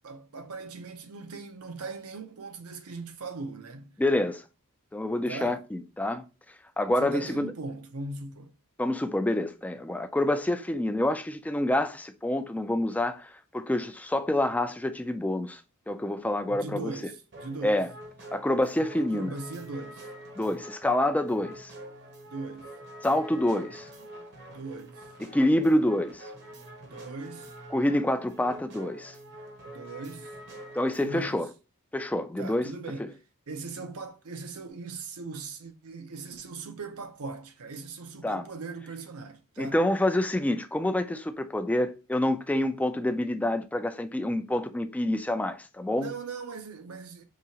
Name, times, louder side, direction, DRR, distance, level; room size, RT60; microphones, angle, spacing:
voice 1, 0.0-4.0 5.3-5.6 7.0-8.5 16.5-17.8 18.8-20.0 22.3-22.7 24.5-25.1 26.8-27.5 28.4-28.5 29.7-30.3 31.0-31.4 32.4-33.2 33.5-39.8 45.9-47.2, right 3 dB, 75° right, 0.7 m, -39 dB
voice 2, 4.0-4.4 4.9-6.2 6.8-7.5 8.8-15.6 15.9-16.9 17.6-17.9 18.3-19.3 20.4-21.7 23.0-23.9 25.3-26.3 27.7-29.2 30.7-31.5 31.9-32.7 38.2-38.4 39.6-46.1, left 1 dB, 5° left, 0.3 m, -27 dB
sound 1, 17.3-31.3, right 1 dB, 50° right, 0.9 m, -46 dB
4.8 x 2.8 x 2.8 m
head